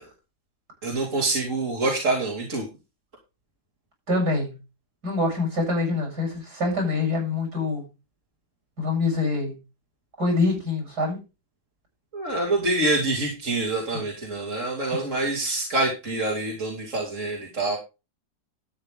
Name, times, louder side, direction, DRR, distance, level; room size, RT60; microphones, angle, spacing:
voice 1, 0.8-2.7 12.1-17.8, right 2 dB, 40° right, -2 dB, 3.1 m, -26 dB
voice 2, 4.1-4.5 5.0-7.8 8.8-9.5 10.2-11.2 13.9-14.0, left 3 dB, 60° right, 1 dB, 8.8 m, -25 dB
12.5 x 9.5 x 3.7 m, 0.28 s
omnidirectional pair, 2.0 m